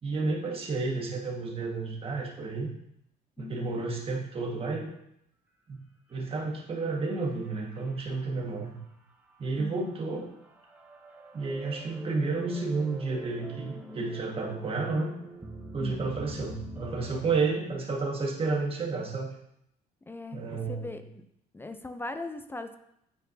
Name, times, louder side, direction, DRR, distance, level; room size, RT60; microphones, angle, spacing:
voice 1, 0.0-2.7 3.4-4.9 5.7-5.8 6.1-8.7 9.4-10.3 11.3-15.2 15.7-19.3 20.3-21.0, right 3 dB, 35° right, -1 dB, 1.5 m, -31 dB
voice 2, 3.4-3.8 9.6-9.8 15.8-16.1 20.1-21.2 21.5-22.8, left 2 dB, 15° left, 9 dB, 0.4 m, -39 dB
sound 1, 6.8-8.2 8.7-8.8 9.9-17.4, right 1 dB, 10° right, 0.8 m, -44 dB
9.0 x 4.5 x 2.7 m, 0.76 s
cardioid pair, 110°, 17 cm